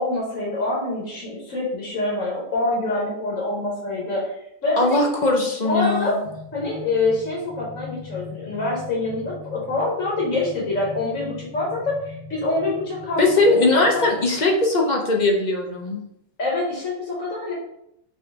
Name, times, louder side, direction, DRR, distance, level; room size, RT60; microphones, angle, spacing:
voice 1, 0.0-5.0 5.6-6.1 6.5-14.0 16.4-17.5, left 2 dB, 75° left, -4 dB, 1.5 m, -26 dB
voice 2, 4.8-6.2 13.2-16.0, left 2 dB, 45° left, 0 dB, 0.6 m, -20 dB
sound 1, 6.2-14.4, left 4 dB, 30° right, 0.3 m, -41 dB
4.9 x 2.7 x 3.5 m, 0.79 s
omnidirectional pair, 1.4 m